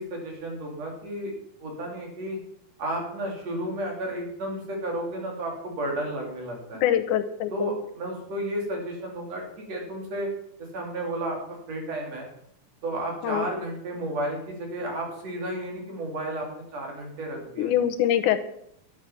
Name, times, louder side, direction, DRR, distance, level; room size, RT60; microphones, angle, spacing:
voice 1, 0.0-1.3 1.6-2.4 2.8-6.8 7.5-10.3 10.7-11.4 11.7-12.3 12.8-17.7, right 1 dB, 55° right, 0 dB, 4.2 m, -32 dB
voice 2, 6.8-7.7 13.2-13.5 17.6-18.4, left 11 dB, 85° left, 10 dB, 2.3 m, -24 dB
12.5 x 9.1 x 5.9 m, 0.74 s
omnidirectional pair, 3.6 m